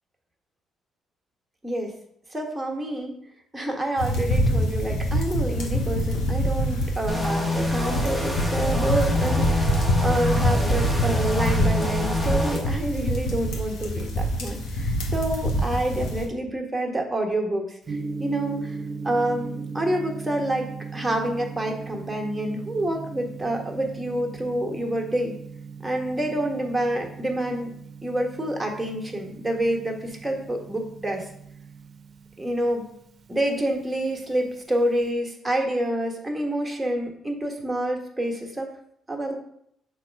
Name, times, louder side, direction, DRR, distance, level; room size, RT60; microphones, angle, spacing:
voice 1, 2.3-3.1 3.5-18.8 19.0-25.3 25.8-27.7 28.0-31.2 32.4-32.9 33.3-38.7 39.1-39.4, right 1 dB, 10° right, 0 dB, 1.4 m, -28 dB
sound 1, 4.0-16.2, equal, 90° left, 1.4 m, -25 dB
sound 2, 7.1-12.6, left 2 dB, 15° left, 1.1 m, -27 dB
Gong, 17.9-35.1, right 4 dB, 50° right, 0.6 m, -39 dB
6.4 x 3.2 x 4.6 m, 0.72 s
cardioid pair, 90°, 0 cm